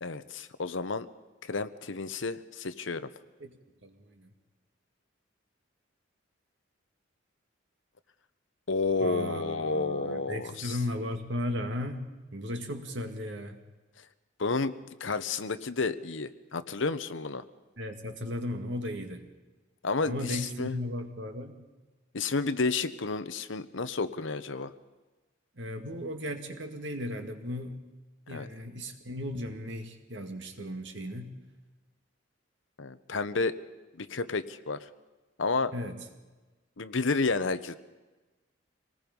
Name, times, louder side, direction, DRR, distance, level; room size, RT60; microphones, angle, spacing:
voice 1, 0.0-1.1 1.4-3.1 8.7-10.8 14.4-14.7 15.0-17.4 19.8-20.8 22.1-24.7 28.3-28.5 32.8-33.6 34.0-34.9 35.4-35.7 36.8-37.8, left 3 dB, 75° left, 12 dB, 0.9 m, -31 dB
voice 2, 3.8-4.3 9.0-13.6 17.8-19.3 20.1-21.7 25.6-27.9 28.3-31.4 35.7-36.0, left 1 dB, 65° right, 5 dB, 2.2 m, -36 dB
26.0 x 19.0 x 5.4 m, 1.2 s
head